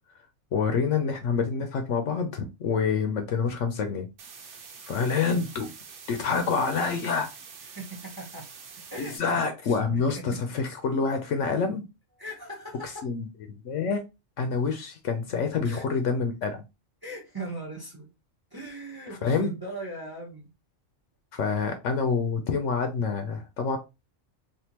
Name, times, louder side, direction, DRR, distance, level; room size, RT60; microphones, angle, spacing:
voice 1, 0.5-4.1 4.8-5.7 6.1-7.3 9.0-11.9 13.0-14.0 14.4-16.6 19.2-19.5 21.3-23.8, left 5 dB, 75° left, 1.0 m, -27 dB
sound 1, 4.2-9.2, right 5 dB, 70° right, 1.0 m, -46 dB
voice 2, 7.7-8.5 8.8-10.4 12.2-13.0 15.6-15.8 17.0-18.1 18.5-20.5, right 1 dB, 20° right, 0.8 m, -39 dB
3.5 x 2.6 x 2.9 m
omnidirectional pair, 1.3 m